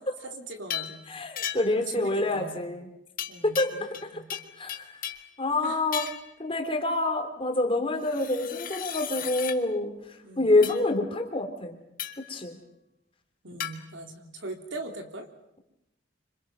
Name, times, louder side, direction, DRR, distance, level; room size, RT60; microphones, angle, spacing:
voice 1, 0.2-1.0 1.8-2.6 3.3-3.9 4.1-4.3 5.6-5.8 10.2-10.6 13.4-15.3, right 2 dB, 75° right, 4 dB, 3.4 m, -40 dB
sound 1, 0.7-1.0 1.4-1.8 3.2-4.0 4.3-5.3 5.9-6.3 8.0-9.6 10.6-10.8 12.0-12.3 13.6-13.8, left 10 dB, 45° left, 1.8 m, -35 dB
voice 2, 1.1-2.9 3.4-3.7 4.3-4.9 5.4-6.0 6.4-9.9 10.4-11.8 12.3-12.6, left 2 dB, 30° left, 4 dB, 3.0 m, -27 dB
27.0 x 26.0 x 6.1 m, 0.89 s
head